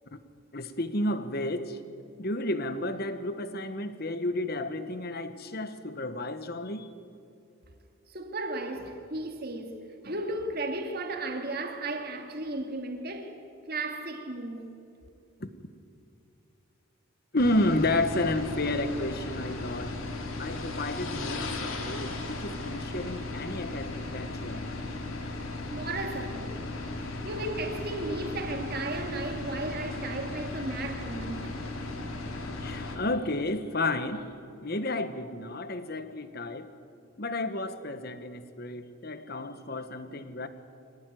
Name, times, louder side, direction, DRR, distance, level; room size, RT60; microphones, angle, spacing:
voice 1, 0.5-1.8 2.2-6.9 15.4-15.5 17.3-20.0 20.4-24.7 32.6-34.3 34.6-36.7 37.2-40.5, left 1 dB, 45° left, 1.4 m, -31 dB
voice 2, 8.1-13.4 13.7-14.7 25.7-26.6 27.2-31.5, right 2 dB, 45° right, 2.3 m, -35 dB
sound 1, 17.4-33.0, left 2 dB, 75° left, 3.2 m, -36 dB
25.0 x 17.5 x 9.3 m
head